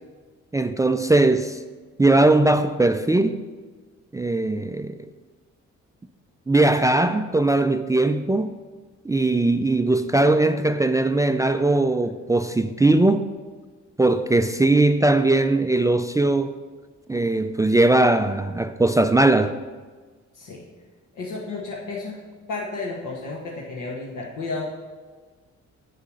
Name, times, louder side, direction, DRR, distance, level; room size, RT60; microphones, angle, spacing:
voice 1, 0.5-1.6 2.0-3.4 4.1-5.0 6.5-8.5 9.0-13.3 14.0-16.5 17.1-19.5, right 2 dB, 10° right, 0.4 m, -20 dB
voice 2, 20.3-20.7 21.1-22.2 22.5-24.7, left 3 dB, 80° left, 1.5 m, -32 dB
7.5 x 6.6 x 6.4 m
cardioid pair, 90°, 30 cm